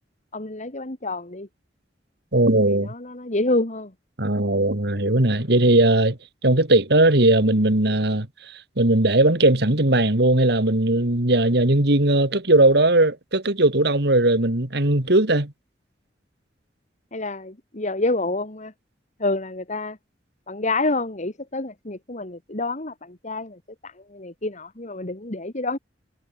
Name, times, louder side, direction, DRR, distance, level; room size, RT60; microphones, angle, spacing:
voice 1, 0.3-1.5 2.7-3.9 17.1-18.7 19.2-20.0 20.5-25.8, left 2 dB, 45° left, 2.3 m, -28 dB
voice 2, 2.3-2.9 4.2-6.2 6.4-8.3 8.8-15.5, right 2 dB, 65° right, 2.7 m, -18 dB
head